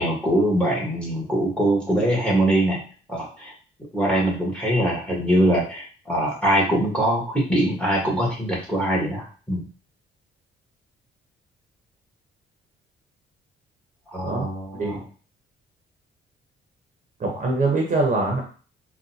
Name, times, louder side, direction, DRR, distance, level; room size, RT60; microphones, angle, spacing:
voice 1, 0.0-2.8 3.1-3.5 3.9-9.6 14.1-15.0, right 1 dB, 5° left, -2 dB, 1.4 m, -22 dB
voice 2, 17.2-18.4, right 2 dB, 40° right, 0 dB, 0.9 m, -23 dB
3.7 x 2.3 x 2.8 m, 0.39 s
cardioid pair, 90°, 20 cm